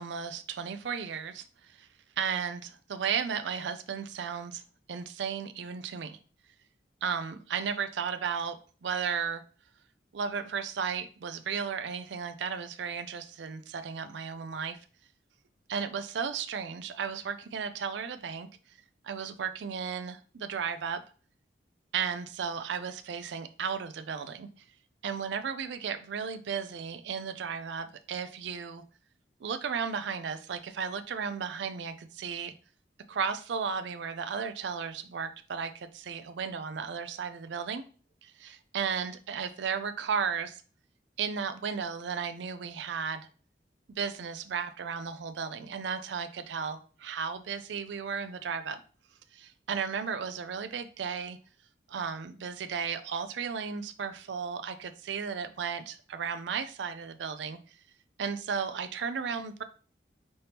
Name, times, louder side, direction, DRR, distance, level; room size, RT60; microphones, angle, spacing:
voice 1, 0.0-1.9 2.2-4.6 4.9-6.2 7.0-9.4 10.1-14.8 15.7-18.5 19.0-21.0 21.9-24.5 25.0-28.8 29.4-32.5 33.1-37.8 38.2-40.6 41.2-43.2 43.9-48.8 49.3-51.4 51.9-57.6 58.2-59.6, right 6 dB, 85° right, 10 dB, 0.4 m, -34 dB
5.4 x 2.8 x 3.4 m, 0.40 s
head